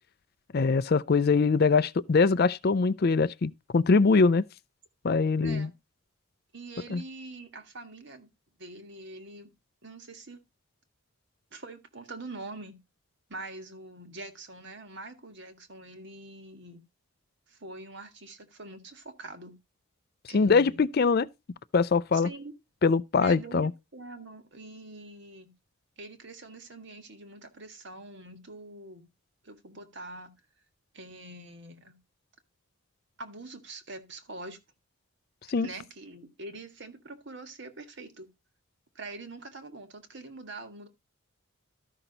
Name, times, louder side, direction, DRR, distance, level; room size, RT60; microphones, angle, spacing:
voice 1, 0.5-4.4 5.0-5.7 6.9-7.0 20.3-21.3 21.7-22.3 22.8-23.7 35.5-35.7, left 4 dB, 45° left, 0.4 m, -23 dB
voice 2, 6.5-8.3 8.6-9.5 9.8-10.4 11.5-12.8 13.3-16.8 17.5-19.6 20.3-20.8 22.1-22.5 23.2-25.5 26.0-29.1 29.4-30.3 30.9-32.0 33.2-34.6 35.6-38.3 38.9-40.9, right 2 dB, 55° right, 1.6 m, -44 dB
13.0 x 6.0 x 3.9 m
head